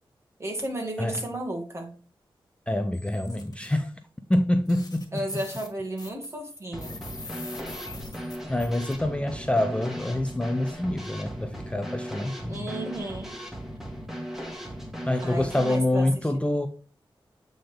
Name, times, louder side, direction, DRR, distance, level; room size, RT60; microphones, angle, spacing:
voice 1, 0.4-1.9 5.1-7.0 12.5-13.4 15.2-16.4, right 1 dB, 30° right, 2.2 m, -33 dB
voice 2, 2.7-3.9 4.3-5.1 8.5-12.7 15.1-16.7, left 1 dB, 10° left, 0.6 m, -26 dB
sound 1, 2.9-3.7 4.3-4.4 4.7-8.9, left 3 dB, 40° left, 1.9 m, -44 dB
Drum kit / Snare drum, 6.7-15.8, equal, 5° right, 2.0 m, -37 dB
8.4 x 3.9 x 3.5 m
cardioid pair, 55°, 9 cm